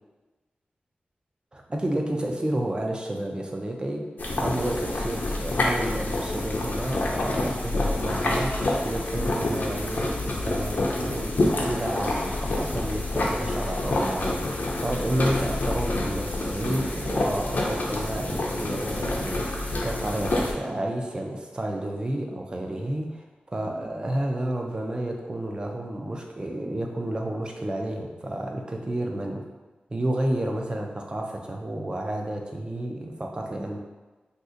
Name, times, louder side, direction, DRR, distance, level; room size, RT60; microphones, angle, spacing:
voice 1, 1.5-4.0 4.4-29.4 29.9-33.8, right 1 dB, 25° right, 1 dB, 0.4 m, -31 dB
sound 1, 4.2-20.5, left 2 dB, 60° left, 0.5 m, -27 dB
2.7 x 2.4 x 3.7 m, 1.2 s
wide cardioid pair, 110°, 3 cm